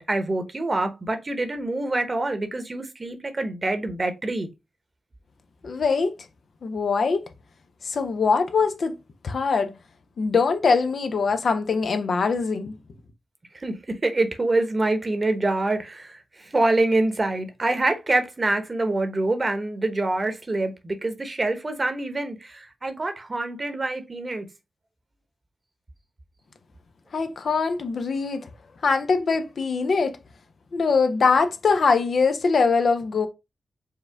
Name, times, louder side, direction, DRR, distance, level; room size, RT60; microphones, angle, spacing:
voice 1, 0.0-4.5 13.5-24.5, right 2 dB, 40° right, 0.9 m, -26 dB
voice 2, 5.6-6.2 6.6-7.3 7.8-9.0 9.2-9.7 10.2-12.7 27.1-28.5 28.8-30.2 30.7-33.3, left 4 dB, 70° left, 0.6 m, -22 dB
4.7 x 2.2 x 3.4 m
cardioid pair, 50°, 0 cm